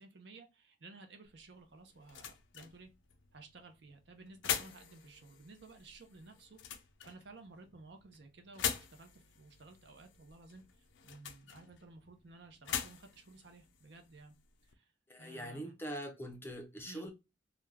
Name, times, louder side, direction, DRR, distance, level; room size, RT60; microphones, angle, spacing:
voice 1, 0.0-2.9 3.3-6.6 7.0-14.4 14.6-14.9 15.2-15.7 16.8-17.1, right 3 dB, 60° right, 0.6 m, -55 dB
sound 1, 1.2-14.7, left 8 dB, 75° left, 0.5 m, -44 dB
voice 2, 15.1-17.1, equal, 10° left, 0.4 m, -43 dB
2.4 x 2.2 x 3.2 m
head